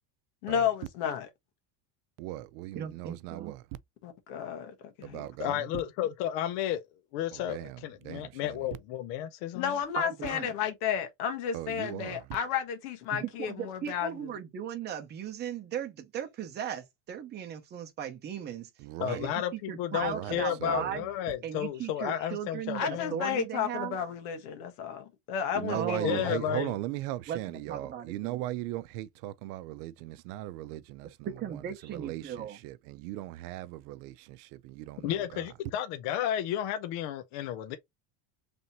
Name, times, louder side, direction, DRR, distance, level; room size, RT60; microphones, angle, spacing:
voice 1, 0.4-1.3 4.0-5.3 9.5-14.3 22.7-26.6, left 8 dB, 85° left, 1.4 m, -32 dB
voice 2, 2.2-3.6 5.0-5.7 7.3-8.6 11.5-12.2 18.8-19.3 20.0-21.0 25.5-31.3 31.8-35.5, right 15 dB, 80° right, 0.6 m, -38 dB
voice 3, 2.7-3.5 9.9-10.5 13.1-18.7 19.1-21.1 21.4-24.0 25.7-26.3 27.3-28.4 31.2-32.6, right 9 dB, 25° right, 0.7 m, -37 dB
voice 4, 5.4-6.8 7.1-9.7 19.0-23.2 26.0-26.7 35.0-37.8, left 11 dB, 55° left, 0.5 m, -32 dB
3.4 x 2.7 x 4.1 m
cardioid pair, 165°, 45 cm